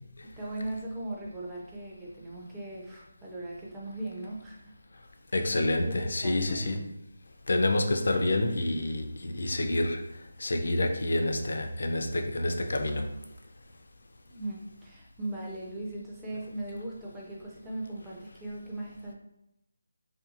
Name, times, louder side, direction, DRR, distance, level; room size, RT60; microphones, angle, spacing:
voice 1, 0.2-4.7 5.3-6.8 14.3-19.1, right 1 dB, 5° right, -6 dB, 0.5 m, -39 dB
voice 2, 5.3-6.7 7.5-10.0 10.4-13.0, left 1 dB, 65° left, 4 dB, 0.4 m, -28 dB
2.6 x 2.6 x 2.5 m, 0.85 s
figure-of-eight pair, 165°, 0 cm